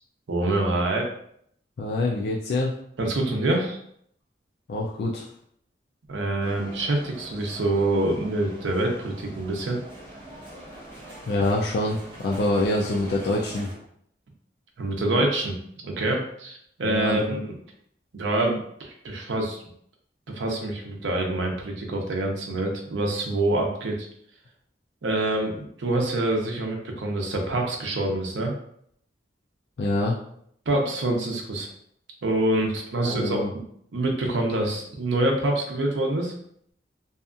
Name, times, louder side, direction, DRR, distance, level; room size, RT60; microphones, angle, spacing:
voice 1, 0.3-1.1 3.0-3.8 6.1-9.8 14.8-17.5 18.1-19.6 20.3-24.1 25.0-28.5 30.7-31.7 32.2-33.6 33.9-36.3, right 2 dB, 80° right, 1 dB, 0.5 m, -26 dB
voice 2, 1.8-2.8 4.7-5.2 11.3-13.7 16.8-17.3 29.8-30.2 33.0-33.5, left 2 dB, 60° left, -3 dB, 0.3 m, -25 dB
sound 1, 6.4-13.8, right 1 dB, 25° right, 1.0 m, -43 dB
2.7 x 2.3 x 2.4 m, 0.68 s
head